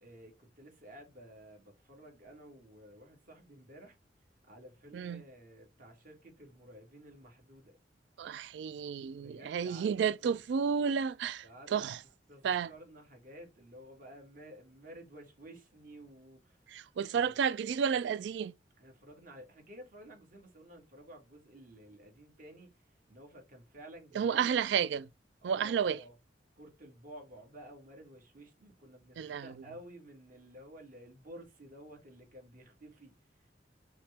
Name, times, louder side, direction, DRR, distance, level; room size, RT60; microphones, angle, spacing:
voice 1, 0.0-4.0 4.5-7.8 9.1-10.4 11.4-11.9 12.3-16.8 17.0-17.3 18.8-24.5 25.4-26.1 26.6-33.5, right 1 dB, 50° right, 1.7 m, -53 dB
voice 2, 8.2-11.4 11.7-12.0 12.4-12.7 16.7-18.5 24.2-25.1 25.4-26.0 29.2-29.5, right 7 dB, 70° right, 0.3 m, -31 dB
5.7 x 2.2 x 3.3 m
head